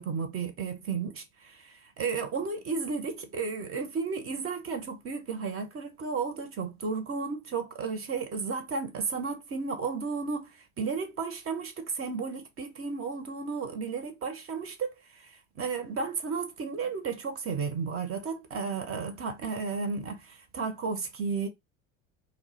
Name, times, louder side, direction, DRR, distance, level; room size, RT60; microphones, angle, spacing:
voice 1, 0.0-21.5, right 5 dB, 35° right, 0.7 m, -33 dB
2.2 x 2.1 x 3.8 m
hypercardioid pair, 85°, 39 cm